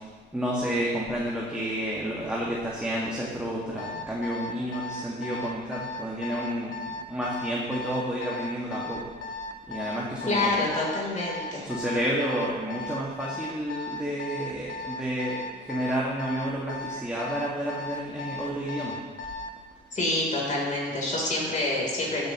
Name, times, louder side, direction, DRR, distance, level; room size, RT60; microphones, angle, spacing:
voice 1, 0.0-9.1 9.7-10.7 11.6-19.0, equal, 5° right, -6 dB, 2.0 m, -30 dB
Alarm, 3.8-19.6, left 3 dB, 70° left, 1.1 m, -36 dB
voice 2, 10.3-11.6 19.9-22.3, left 2 dB, 40° left, -4 dB, 3.7 m, -27 dB
13.5 x 9.1 x 3.1 m, 1.4 s
cardioid pair, 90°, 20 cm